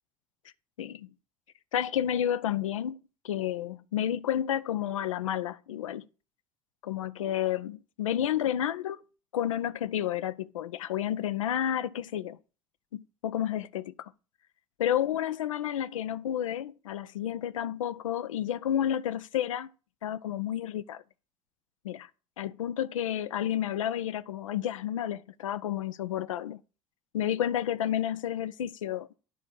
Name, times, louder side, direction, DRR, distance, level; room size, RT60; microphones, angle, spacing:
voice 1, 0.8-1.1 1.7-3.0 3.2-6.1 6.8-9.0 9.3-12.4 12.9-14.1 14.8-19.7 20.0-21.0 21.8-22.1 22.4-26.6 27.1-29.1, left 10 dB, 75° left, 0.4 m, -31 dB
10.0 x 3.5 x 6.1 m
figure-of-eight pair, 60°, 17 cm